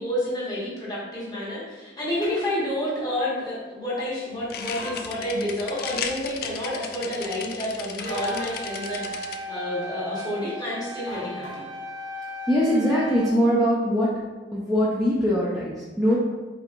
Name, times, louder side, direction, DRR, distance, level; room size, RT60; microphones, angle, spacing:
voice 1, 0.0-11.6, left 1 dB, 20° left, -6 dB, 1.2 m, -29 dB
sound 1, 2.2-2.5 4.7-5.0 8.0-8.6 11.1-11.8, equal, 85° left, 1.5 m, -39 dB
sound 2, 4.4-9.4, left 7 dB, 50° left, 0.3 m, -36 dB
sound 3, 8.1-13.3, equal, 80° right, 0.5 m, -37 dB
voice 2, 12.5-14.2 14.5-16.2, equal, ahead, -9 dB, 0.6 m, -22 dB
4.5 x 4.0 x 2.5 m, 1.2 s
head